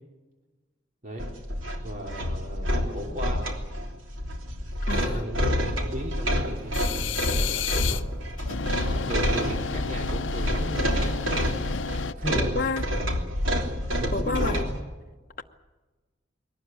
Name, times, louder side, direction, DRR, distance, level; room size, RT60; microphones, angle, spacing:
sound 1, 1.2-14.8, equal, 90° right, 3.2 m, -28 dB
voice 1, 1.8-3.5 5.0-8.1 8.9-11.2 12.2-12.9 13.9-14.6, right 1 dB, 40° right, 2.9 m, -36 dB
voice 2, 4.9-5.3 12.3-12.8 13.9-14.7, left 3 dB, 45° left, 1.0 m, -30 dB
sound 2, 6.7-8.0 8.4-12.1, left 6 dB, 70° left, 0.7 m, -32 dB
23.0 x 18.0 x 9.0 m
head